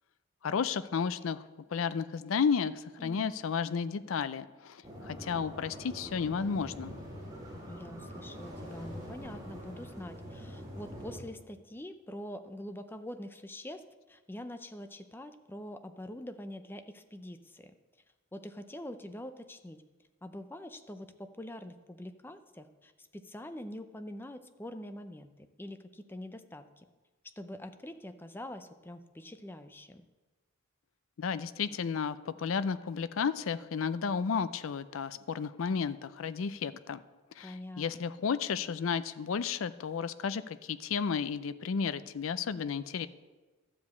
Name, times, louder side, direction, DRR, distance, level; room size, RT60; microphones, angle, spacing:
voice 1, 0.4-1.4 1.7-6.9 31.2-37.0 37.4-43.1, left 6 dB, 75° left, 13 dB, 0.4 m, -32 dB
voice 2, 3.0-3.3 7.7-13.8 14.1-17.7 18.3-19.8 20.2-26.9 27.4-30.1 37.4-38.0, left 1 dB, 10° left, 8 dB, 0.5 m, -45 dB
sound 1, 4.8-11.2, equal, 20° right, 2.6 m, -44 dB
12.5 x 5.2 x 8.2 m, 1.3 s
head